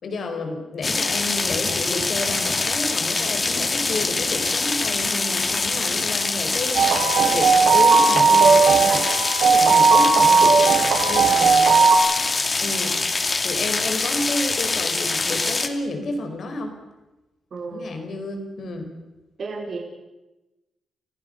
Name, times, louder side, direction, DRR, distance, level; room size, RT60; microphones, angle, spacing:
voice 1, 0.0-9.1 9.4-10.3 11.0-11.7 12.6-13.0 13.4-16.7 17.7-18.9, left 2 dB, 65° left, 5 dB, 5.2 m, -30 dB
sound 1, 0.8-15.7, left 3 dB, 35° left, 2.3 m, -24 dB
sound 2, 6.8-12.0, right 5 dB, 85° right, 2.8 m, -16 dB
voice 2, 17.5-17.9 19.4-19.8, right 4 dB, 55° right, 0 dB, 4.5 m, -32 dB
29.0 x 15.5 x 6.8 m, 1.0 s
cardioid pair, 80°, 0 cm